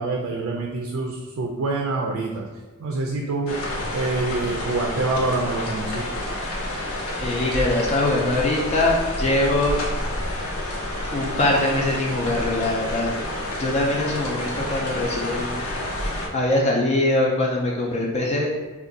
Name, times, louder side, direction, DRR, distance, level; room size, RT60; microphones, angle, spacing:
voice 1, 0.0-2.5 2.8-3.5 3.9-6.0, right 3 dB, 70° right, 0 dB, 0.4 m, -26 dB
sound 1, 3.5-16.3, left 1 dB, 70° left, 0.6 m, -29 dB
voice 2, 7.2-9.8 11.1-13.2 13.6-15.6 16.0-18.5, left 1 dB, 30° left, -2 dB, 0.3 m, -23 dB
2.5 x 2.2 x 3.7 m, 1.3 s
head